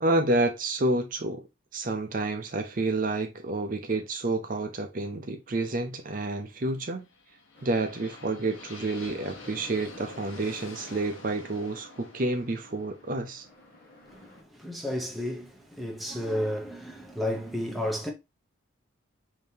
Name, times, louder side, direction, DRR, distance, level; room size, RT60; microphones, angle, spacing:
voice 1, 0.0-1.4 1.7-7.0 7.6-13.5, right 2 dB, 40° right, 0.5 m, -29 dB
sound 1, 6.9-14.9, left 3 dB, 75° left, 1.0 m, -48 dB
sound 2, 7.5-14.4, left 2 dB, 45° left, 1.2 m, -53 dB
voice 2, 14.1-18.1, left 1 dB, ahead, 0.7 m, -32 dB
5.1 x 2.8 x 2.7 m
head